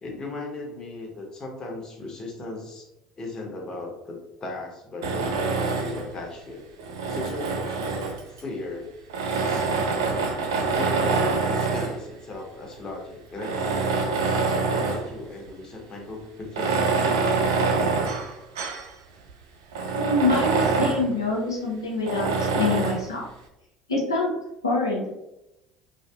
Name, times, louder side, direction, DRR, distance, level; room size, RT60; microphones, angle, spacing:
voice 1, 0.0-2.9 3.2-6.6 7.1-8.9 9.4-9.7 10.7-14.4 14.7-16.8, left 2 dB, 30° left, 0 dB, 0.8 m, -37 dB
Tools, 5.0-6.1 6.8-8.4 9.1-12.0 12.7-12.8 13.3-15.1 15.5-15.6 16.4-18.9 19.3-19.4 19.7-21.1 22.1-23.1, right 4 dB, 75° right, 0.3 m, -25 dB
voice 2, 19.8-23.3 23.9-24.3 24.6-25.1, left 3 dB, 90° left, -3 dB, 0.4 m, -25 dB
2.6 x 2.4 x 2.3 m, 0.90 s
figure-of-eight pair, 65°, 2 cm